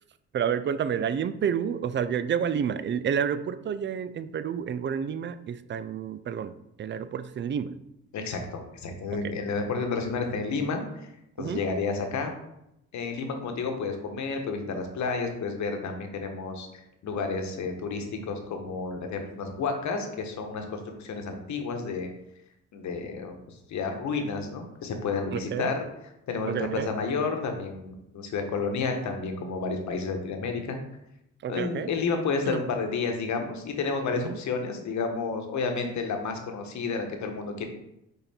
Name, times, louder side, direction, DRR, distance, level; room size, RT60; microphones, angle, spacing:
voice 1, 0.3-6.5 6.8-7.7 9.1-9.4 11.4-11.6 25.3-25.7 26.5-26.9 31.4-31.9 32.5-32.6 34.2-34.4, right 8 dB, 40° right, 12 dB, 0.4 m, -29 dB
voice 2, 8.1-11.1 11.4-12.3 12.9-16.7 17.0-22.1 22.7-23.4 23.7-25.8 26.3-30.8 31.5-37.7, left 4 dB, 70° left, 4 dB, 1.2 m, -31 dB
5.6 x 4.1 x 4.3 m, 0.83 s
cardioid pair, 90°, 30 cm